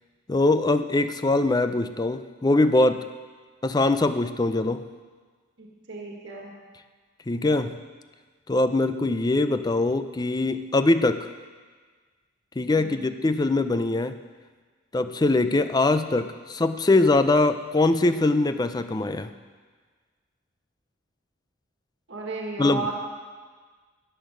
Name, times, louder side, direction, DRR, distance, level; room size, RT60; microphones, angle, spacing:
voice 1, 0.3-3.1 3.6-4.9 7.3-7.8 8.5-11.3 12.6-14.2 14.9-19.3 22.6-22.9, left 2 dB, 20° left, 11 dB, 0.4 m, -22 dB
voice 2, 5.6-6.5 12.8-13.1 22.1-22.9, right 3 dB, 60° right, -1 dB, 1.7 m, -34 dB
14.0 x 10.0 x 5.2 m, 1.5 s
head